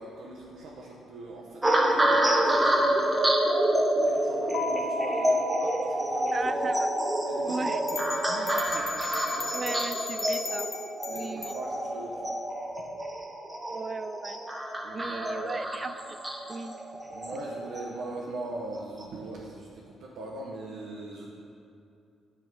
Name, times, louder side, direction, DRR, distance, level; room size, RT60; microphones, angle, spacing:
voice 1, 0.0-3.3 3.6-6.8 7.2-9.6 11.1-12.4 14.8-15.6 17.1-21.3, right 2 dB, 85° right, -5 dB, 0.9 m, -41 dB
sound 1, 1.6-18.1 18.7-19.0, right 1 dB, 15° right, 0.8 m, -28 dB
Keyboard (musical), 4.5-7.1, equal, 85° left, 0.7 m, -38 dB
voice 2, 6.3-6.9 7.4-7.8 9.5-10.7 11.1-11.5 13.7-14.4 14.9-16.2 16.5-16.7, right 3 dB, 30° right, 12 dB, 0.3 m, -36 dB
sound 2, 7.9-11.6, left 4 dB, 40° left, 1.0 m, -37 dB
9.0 x 3.6 x 6.1 m, 2.5 s
cardioid pair, 90°, 0 cm